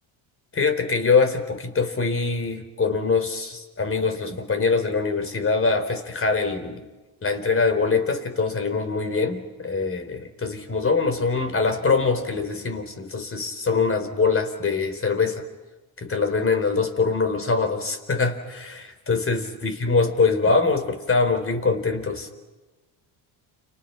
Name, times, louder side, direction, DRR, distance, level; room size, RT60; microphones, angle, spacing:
voice 1, 0.5-6.9 7.2-15.4 16.0-22.3, left 4 dB, 30° left, 7 dB, 4.3 m, -23 dB
30.0 x 28.5 x 5.9 m, 1.2 s
supercardioid pair, 85°, 45 cm